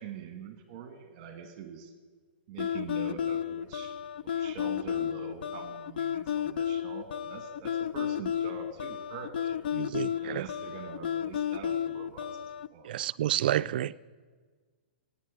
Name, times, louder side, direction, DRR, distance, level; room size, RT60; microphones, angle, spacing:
voice 1, 0.0-1.9 2.5-4.0 4.2-9.6 10.1-12.9, right 7 dB, 35° right, 1.3 m, -44 dB
sound 1, 2.6-12.7, left 9 dB, 60° left, 0.4 m, -32 dB
voice 2, 9.7-10.5 12.8-13.9, right 12 dB, 60° right, 0.3 m, -30 dB
17.0 x 8.7 x 5.1 m
hypercardioid pair, 165°, 6 cm